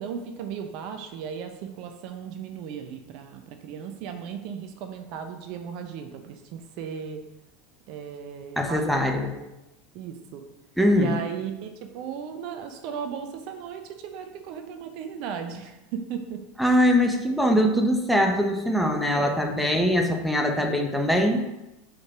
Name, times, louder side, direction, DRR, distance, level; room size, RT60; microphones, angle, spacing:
voice 1, 0.0-7.2 7.9-9.5 9.9-10.4 11.0-16.4 19.1-19.5, right 7 dB, 50° right, 6 dB, 0.8 m, -36 dB
voice 2, 8.6-9.3 10.8-11.2 16.6-21.4, equal, ahead, 3 dB, 1.2 m, -22 dB
6.2 x 5.0 x 6.0 m, 0.97 s
figure-of-eight pair, 80°, 0 cm